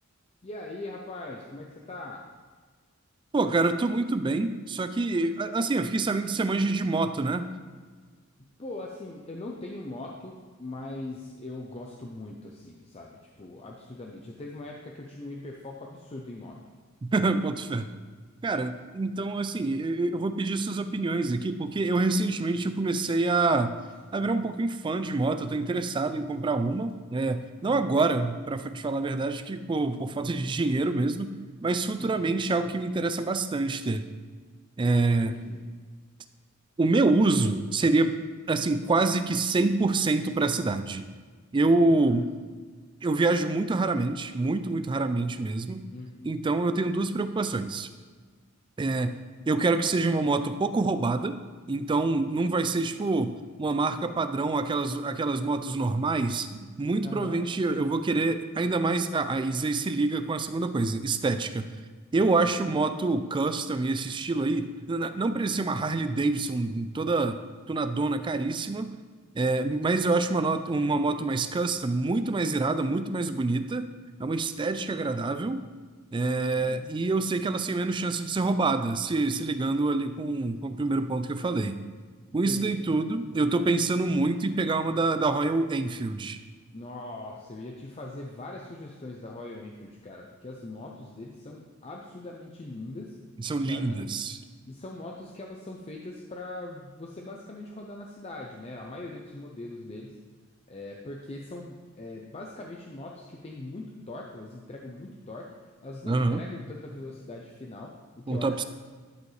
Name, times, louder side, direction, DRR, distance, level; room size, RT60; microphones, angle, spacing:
voice 1, 0.4-2.2 8.6-16.6 27.6-27.9 31.9-32.3 35.3-35.6 41.9-42.2 45.9-46.4 57.0-57.4 62.4-62.7 76.4-76.9 82.4-82.8 86.7-93.2 93.7-94.2 94.7-100.2 100.7-105.5 105.8-108.6, left 2 dB, 30° left, 0 dB, 0.6 m, -41 dB
voice 2, 3.3-7.5 17.0-17.9 18.4-23.7 24.1-31.3 31.6-34.1 34.8-35.3 36.8-38.2 38.5-41.1 41.5-42.3 43.0-45.8 46.2-47.9 48.8-49.2 49.5-51.4 51.7-61.7 62.1-67.4 67.7-68.9 69.3-73.9 74.2-75.7 76.1-81.8 82.3-86.4 93.4-94.4 106.1-106.4 108.3-108.6, right 3 dB, 20° right, 10 dB, 0.3 m, -26 dB
11.5 x 5.1 x 3.3 m, 1.5 s
head